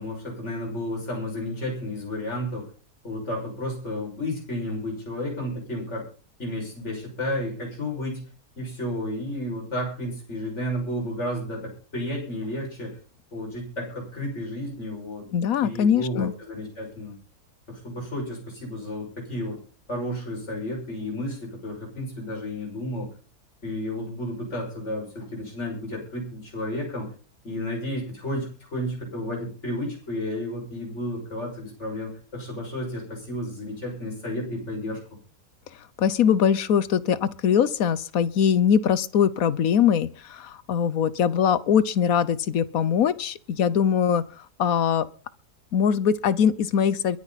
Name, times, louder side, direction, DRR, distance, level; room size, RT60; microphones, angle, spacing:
voice 1, 0.0-2.7 3.0-6.1 6.4-8.3 8.6-13.0 13.3-15.3 15.6-17.2 17.7-19.6 19.9-23.1 23.6-27.1 27.4-35.0, left 1 dB, 45° left, 6.6 m, -32 dB
voice 2, 15.3-16.3 36.0-44.2 44.6-45.1 45.7-47.2, left 8 dB, 65° left, 1.2 m, -22 dB
22.5 x 9.9 x 4.2 m
omnidirectional pair, 1.7 m